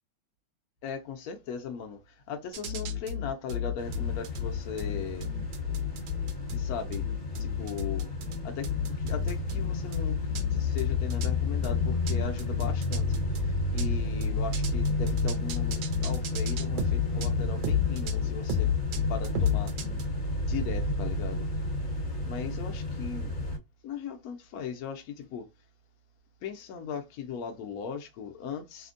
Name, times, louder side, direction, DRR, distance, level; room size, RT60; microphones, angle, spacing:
voice 1, 0.8-5.3 6.5-7.1 7.4-8.1 8.4-18.7 19.1-19.7 20.5-21.5 22.2-23.3 23.8-25.5 26.4-28.9, left 6 dB, 75° left, 0.8 m, -38 dB
sound 1, 2.5-20.0, left 7 dB, 85° right, 1.4 m, -31 dB
sound 2, 3.8-23.6, left 2 dB, 40° left, 1.5 m, -32 dB
3.3 x 2.1 x 2.4 m
omnidirectional pair, 2.1 m